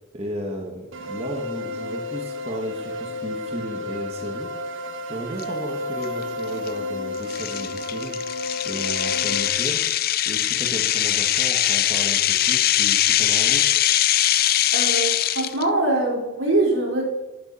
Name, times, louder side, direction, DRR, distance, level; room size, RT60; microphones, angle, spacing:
voice 1, 0.1-4.5 5.1-8.2 8.6-9.9 10.3-13.6, equal, 30° right, 0 dB, 1.8 m, -34 dB
sound 1, 0.9-9.5, left 2 dB, 70° right, 1.0 m, -31 dB
sound 2, 5.4-5.5 6.0-6.2 6.7-6.8 7.3-15.6, left 12 dB, 45° left, 0.5 m, -21 dB
voice 2, 14.7-17.0, right 2 dB, 90° right, -1 dB, 4.2 m, -23 dB
12.0 x 11.0 x 5.6 m, 1.1 s
head